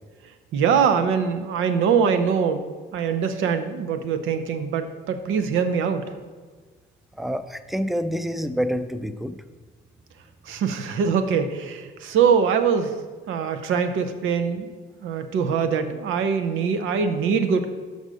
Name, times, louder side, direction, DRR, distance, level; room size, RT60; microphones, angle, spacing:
voice 1, 0.5-6.1 10.5-12.9 13.3-14.7 15.0-17.7, right 6 dB, 85° right, 8 dB, 0.8 m, -23 dB
voice 2, 7.2-9.4, equal, ahead, 11 dB, 0.4 m, -27 dB
6.5 x 5.4 x 6.3 m, 1.4 s
cardioid pair, 90°, 20 cm